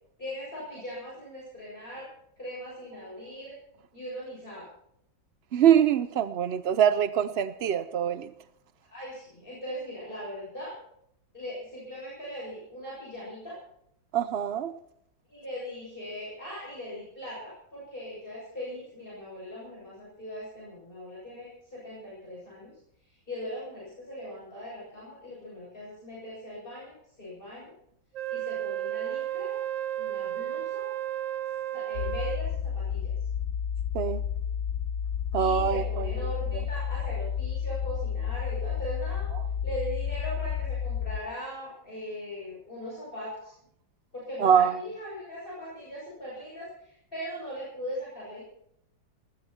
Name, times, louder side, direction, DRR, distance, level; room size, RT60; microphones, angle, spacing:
voice 1, 0.2-2.1 2.4-3.6 3.9-4.7 8.8-10.7 11.3-13.6 15.3-22.7 23.0-27.7 28.3-29.5 30.0-30.9 31.7-33.1 35.3-39.3 39.6-43.5 44.1-48.4, equal, 30° left, 7.6 m, -40 dB
voice 2, 5.5-8.3 14.1-14.7 33.9-34.2 35.3-36.1 44.4-44.8, right 9 dB, 70° right, 0.5 m, -24 dB
Wind instrument woodwind instrument, 28.1-32.5, right 12 dB, 55° right, 1.0 m, -33 dB
sound 1, 31.9-41.2, left 8 dB, 60° left, 1.1 m, -31 dB
20.0 x 14.5 x 4.4 m
omnidirectional pair, 2.0 m